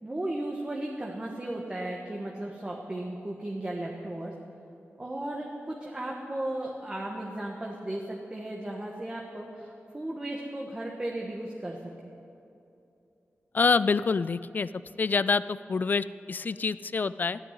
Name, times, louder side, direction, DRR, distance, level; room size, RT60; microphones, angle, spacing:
voice 1, 0.0-4.3 5.0-12.1, right 1 dB, 20° right, -1 dB, 1.3 m, -35 dB
voice 2, 13.5-14.7 15.0-17.4, left 4 dB, 40° left, 16 dB, 0.3 m, -26 dB
14.5 x 9.0 x 9.7 m, 2.7 s
wide cardioid pair, 145°, 5 cm